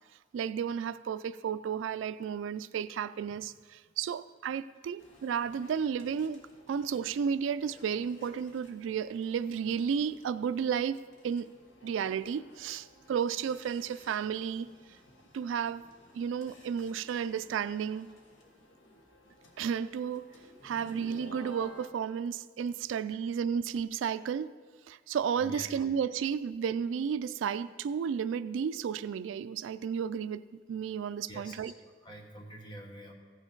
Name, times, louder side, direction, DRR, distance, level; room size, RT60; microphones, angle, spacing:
voice 1, 0.3-6.4 6.7-11.5 11.8-14.7 15.3-15.8 16.1-18.1 19.6-20.2 20.6-24.5 24.9-30.4 30.7-31.7, right 7 dB, 80° right, 14 dB, 0.3 m, -33 dB
sound 1, 5.0-21.9, left 1 dB, 80° left, 1.4 m, -56 dB
voice 2, 31.3-33.1, equal, 25° left, 1 dB, 1.3 m, -47 dB
15.0 x 5.7 x 4.5 m, 1.5 s
head